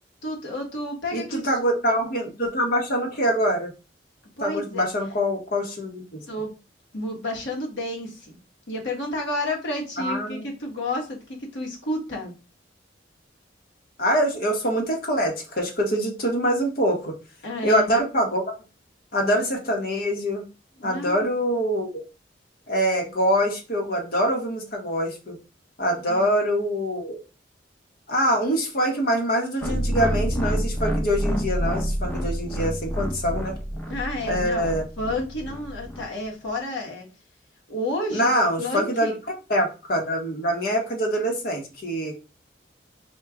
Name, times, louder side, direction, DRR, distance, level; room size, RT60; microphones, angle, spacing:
voice 1, 0.2-1.5 4.4-4.8 6.3-6.5 6.9-8.4 8.7-12.3 17.4-17.9 20.8-21.3 26.1-26.3 33.9-34.7 35.0-37.1 37.7-39.2, left 1 dB, 75° left, 0 dB, 1.4 m, -31 dB
voice 2, 1.1-3.7 4.4-6.2 10.0-10.5 14.0-17.2 17.6-18.5 19.1-20.4 20.8-22.0 22.7-25.4 25.8-27.2 28.1-33.5 34.3-34.8 38.1-39.1 39.5-42.1, equal, 55° left, 1 dB, 1.1 m, -24 dB
sound 1, 29.6-36.0, equal, 10° left, 0.7 m, -28 dB
4.4 x 2.3 x 3.6 m, 0.31 s
head